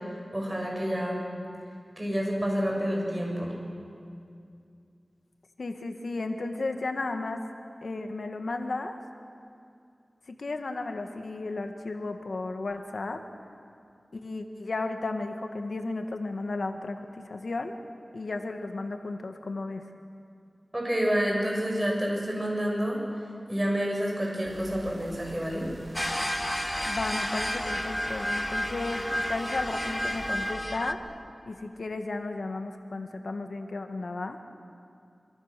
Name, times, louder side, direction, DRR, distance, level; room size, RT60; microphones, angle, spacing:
voice 1, 0.3-1.2 2.0-3.5 20.7-23.0 23.5-25.7, equal, 20° right, -1 dB, 7.6 m, -28 dB
voice 2, 5.6-7.4 7.8-9.0 10.3-13.2 14.1-17.7 18.1-19.8 26.9-31.0 31.5-34.4, left 3 dB, 75° left, 5 dB, 1.7 m, -34 dB
sound 1, 24.4-30.5, equal, 75° right, 7.7 m, -45 dB
sound 2, 25.9-30.9, equal, 10° left, 1.1 m, -31 dB
26.0 x 26.0 x 6.8 m, 2.4 s
wide cardioid pair, 60°, 0 cm